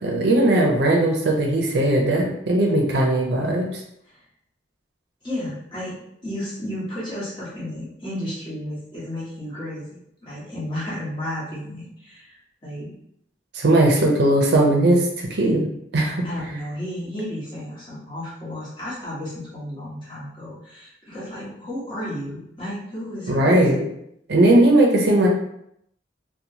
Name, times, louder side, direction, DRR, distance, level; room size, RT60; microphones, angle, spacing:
voice 1, 0.0-3.8 13.5-15.7 15.9-16.3 23.3-23.8 24.3-25.3, right 1 dB, 60° right, 0 dB, 0.5 m, -18 dB
voice 2, 5.2-12.9 16.2-23.8, left 1 dB, 25° left, -9 dB, 1.1 m, -33 dB
2.9 x 2.1 x 2.7 m, 0.76 s
head